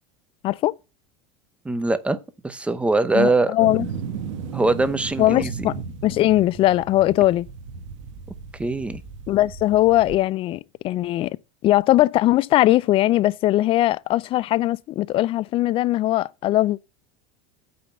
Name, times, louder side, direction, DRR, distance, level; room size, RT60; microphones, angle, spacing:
voice 1, 1.6-2.2 2.4-3.7 4.5-5.7 8.6-9.0, right 2 dB, 10° right, 0.7 m, -22 dB
voice 2, 3.1-3.9 5.2-7.5 9.3-11.4 11.6-16.8, left 15 dB, 35° left, 0.4 m, -20 dB
sound 1, 3.6-10.2, right 6 dB, 80° right, 1.4 m, -35 dB
8.6 x 4.0 x 6.9 m
supercardioid pair, 130°, 16 cm